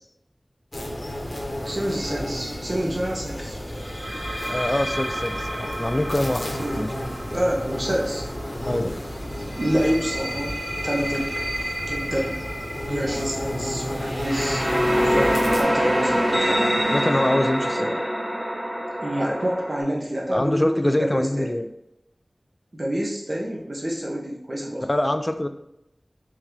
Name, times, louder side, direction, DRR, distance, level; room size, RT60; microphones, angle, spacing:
sound 1, 0.7-15.6, equal, 50° left, 0.9 m, -31 dB
voice 1, 1.6-3.6 6.6-6.7 7.3-8.2 9.6-10.6 10.8-11.3 11.9-12.4 12.9-16.8 17.8-17.9 19.0-21.6 22.7-24.9, equal, 50° right, -3 dB, 0.9 m, -27 dB
sound 2, 2.0-2.3 3.8-8.5 9.3-19.8, equal, 75° right, 1.5 m, -27 dB
voice 2, 4.5-6.9 8.6-9.0 16.9-18.0 20.3-21.7 24.9-25.5, left 1 dB, 30° left, 8 dB, 0.4 m, -24 dB
3.7 x 3.4 x 3.2 m, 0.82 s
wide cardioid pair, 50°, 0 cm